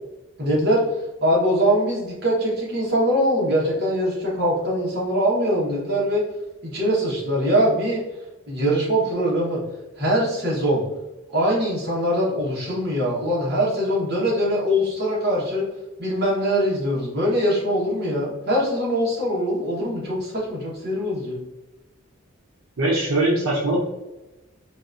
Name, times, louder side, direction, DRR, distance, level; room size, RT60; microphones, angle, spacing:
voice 1, 0.4-0.8 1.2-6.2 6.6-8.0 8.5-9.6 10.0-10.8 11.3-15.6 16.0-21.4, equal, 50° right, -5 dB, 1.2 m, -22 dB
voice 2, 22.8-23.8, right 1 dB, 85° right, -3 dB, 0.7 m, -21 dB
3.9 x 2.4 x 2.5 m, 0.99 s
head